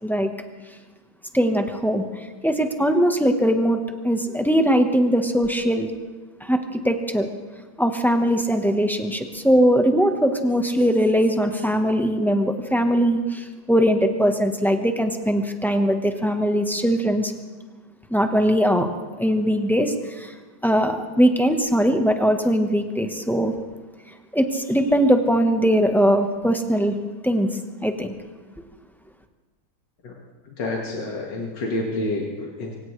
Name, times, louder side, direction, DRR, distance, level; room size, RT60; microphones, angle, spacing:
voice 1, 1.3-2.1 2.4-5.9 6.4-7.3 7.8-17.3 18.1-18.9 19.2-20.3 20.6-23.5 24.3-26.9 27.2-27.5 27.8-28.1, equal, ahead, 5 dB, 0.8 m, -20 dB
voice 2, 30.5-32.7, left 2 dB, 90° left, -2 dB, 2.4 m, -28 dB
24.0 x 17.5 x 3.3 m, 1.3 s
omnidirectional pair, 1.9 m